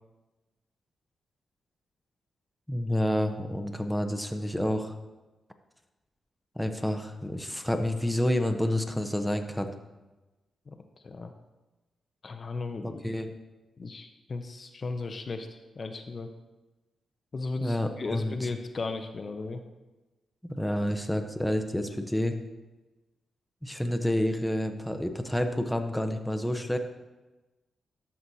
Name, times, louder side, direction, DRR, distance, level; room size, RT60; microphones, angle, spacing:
voice 1, 2.7-4.9 6.6-9.7 13.0-13.3 17.6-18.5 20.4-22.3 23.6-26.8, left 1 dB, ahead, 5 dB, 0.8 m, -29 dB
voice 2, 12.2-13.0 13.8-16.3 17.3-19.6, left 3 dB, 45° left, 6 dB, 0.7 m, -36 dB
12.5 x 5.9 x 2.8 m, 1.1 s
cardioid pair, 65°, 0 cm